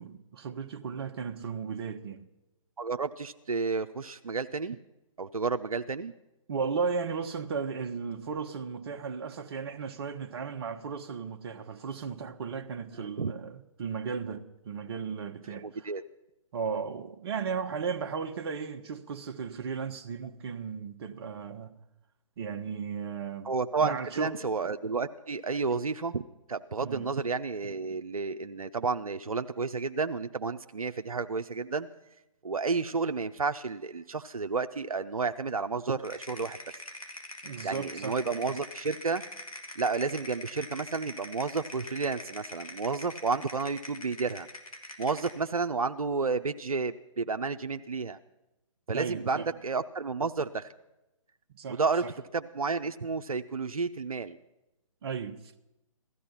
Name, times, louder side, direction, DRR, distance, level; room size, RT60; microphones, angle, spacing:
voice 1, 0.0-2.3 6.5-15.9 16.5-21.8 22.4-23.5 23.8-24.4 26.8-27.1 37.4-38.2 48.9-49.5 51.5-51.8 55.0-55.4, right 6 dB, 45° right, 1.1 m, -35 dB
voice 2, 2.8-4.8 5.2-6.1 13.0-13.3 15.5-16.0 23.4-26.2 26.5-31.9 32.4-36.6 37.6-39.2 39.8-44.5 45.0-48.2 48.9-50.7 51.7-52.0 52.3-54.4, right 4 dB, 85° right, 0.7 m, -31 dB
sound 1, 36.0-45.4, left 2 dB, 90° left, 2.6 m, -43 dB
16.5 x 14.0 x 5.6 m
figure-of-eight pair, 140°, 18 cm